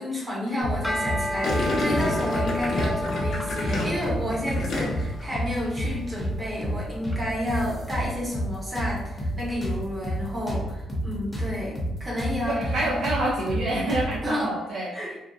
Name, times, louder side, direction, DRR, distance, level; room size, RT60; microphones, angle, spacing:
voice 1, 0.0-12.9 14.2-14.5 14.9-15.2, left 1 dB, 30° right, -4 dB, 0.9 m, -31 dB
sound 1, 0.6-1.2 1.5-1.6 1.9-2.9 3.2-3.3 3.6-4.6 4.9-5.1 5.3-6.3 6.6-6.8 7.0-8.5 8.8-11.5 11.8-11.9 12.2-14.2, equal, 15° left, 0.7 m, -29 dB
sound 2, 0.7-10.0, left 1 dB, 5° right, 0.3 m, -35 dB
Gurgling, 1.4-5.2 5.5-5.9, left 2 dB, 65° left, 0.6 m, -29 dB
voice 2, 12.5-14.9, right 1 dB, 70° right, -5 dB, 0.4 m, -27 dB
2.6 x 2.2 x 2.3 m, 0.96 s
cardioid pair, 90°, 0 cm